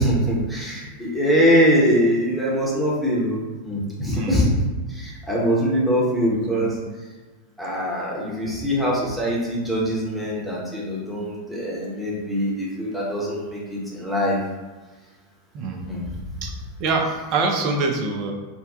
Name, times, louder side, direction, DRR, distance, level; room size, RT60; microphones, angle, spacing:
voice 1, 0.0-4.5 4.9-6.8 7.6-14.4 15.9-16.2, equal, ahead, -6 dB, 0.9 m, -23 dB
voice 2, 15.5-15.9 16.4-16.5 16.8-18.3, right 3 dB, 40° right, 2 dB, 0.5 m, -24 dB
2.7 x 2.2 x 3.6 m, 1.3 s
figure-of-eight pair, 90°, 0 cm